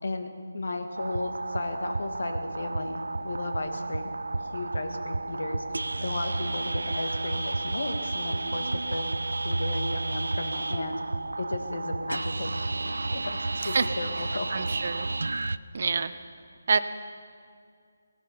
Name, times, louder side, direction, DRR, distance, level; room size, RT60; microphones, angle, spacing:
voice 1, 0.0-4.1 4.5-5.6 6.0-9.0 9.4-11.0 11.4-12.6 13.1-13.4 13.6-14.5, left 2 dB, 70° left, 6 dB, 1.7 m, -34 dB
sound 1, 1.0-15.6, right 2 dB, 85° right, 0.4 m, -32 dB
voice 2, 13.6-13.9 14.5-15.1 15.7-16.1 16.7-16.8, right 5 dB, 50° right, 12 dB, 0.7 m, -26 dB
17.5 x 11.5 x 5.6 m, 2.2 s
figure-of-eight pair, 165°, 0 cm